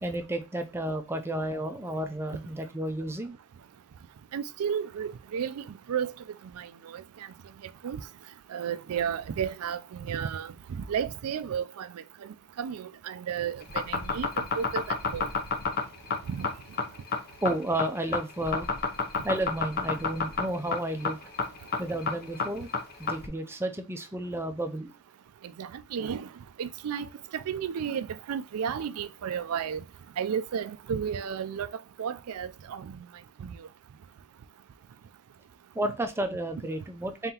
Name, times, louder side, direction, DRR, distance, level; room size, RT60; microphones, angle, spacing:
voice 1, 0.0-3.3 17.4-18.7 19.2-21.2 21.8-22.7 23.0-24.9 35.7-37.3, right 1 dB, 10° right, 0.4 m, -32 dB
voice 2, 4.3-6.1 6.6-7.0 7.8-8.0 8.5-10.5 10.9-15.3 16.3-16.5 25.6-26.3 26.6-29.8 30.2-31.7 32.0-33.1 33.4-33.7, right 7 dB, 75° right, 0.4 m, -33 dB
sound 1, 13.6-23.3, left 5 dB, 45° left, 0.6 m, -29 dB
3.8 x 3.8 x 2.8 m
head